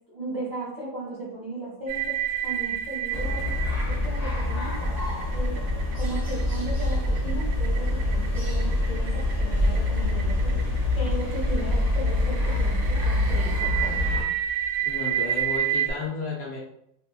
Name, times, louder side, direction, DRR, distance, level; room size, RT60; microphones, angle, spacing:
voice 1, 0.0-2.2 2.4-3.5 3.8-5.0 5.3-5.6 5.9-10.5 10.9-14.0, right 2 dB, 55° right, -7 dB, 0.4 m, -36 dB
sound 1, 1.9-15.9, right 9 dB, 75° right, 1.0 m, -30 dB
sound 2, 3.1-14.2, left 1 dB, 20° left, 0.7 m, -25 dB
voice 2, 14.8-16.6, left 4 dB, 70° left, -3 dB, 0.9 m, -33 dB
3.5 x 2.1 x 2.3 m, 0.76 s
omnidirectional pair, 1.9 m